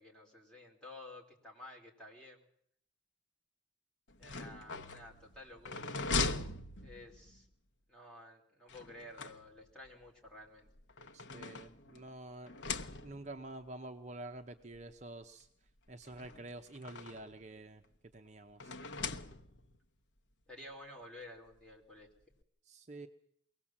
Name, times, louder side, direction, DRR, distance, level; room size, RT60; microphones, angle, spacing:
voice 1, 0.0-2.4 4.2-6.0 6.8-7.5 7.9-10.7 20.5-22.1, left 1 dB, 5° left, -2 dB, 3.3 m, -52 dB
sound 1, 4.1-7.4 8.7-9.9 10.7-12.1 12.5-13.4 14.3-14.4 14.8-14.9 16.0-17.4 18.6-19.8, left 4 dB, 75° left, 0.9 m, -40 dB
voice 2, 11.1-15.5 15.9-17.8 18.1-18.8 22.7-23.1, right 2 dB, 35° right, 5 dB, 0.7 m, -48 dB
23.0 x 17.5 x 7.3 m, 0.69 s
head